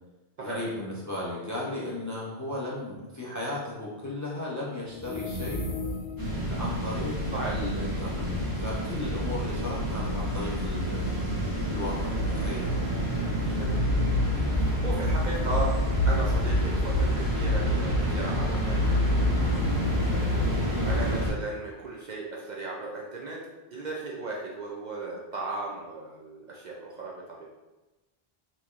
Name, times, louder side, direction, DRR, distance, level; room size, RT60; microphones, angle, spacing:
voice 1, 0.4-5.7 6.5-11.1 11.7-12.7 14.3-14.5 19.8-20.2, left 1 dB, 25° left, -5 dB, 0.5 m, -36 dB
sound 1, 4.9-6.4, left 2 dB, 90° left, 1.0 m, -34 dB
sound 2, 6.2-21.3, equal, 20° right, 0.8 m, -27 dB
voice 2, 13.4-13.8 14.2-15.7 16.0-23.4 23.7-27.5, right 2 dB, 55° right, -3 dB, 0.6 m, -37 dB
4.1 x 2.9 x 2.4 m, 1.1 s
omnidirectional pair, 1.1 m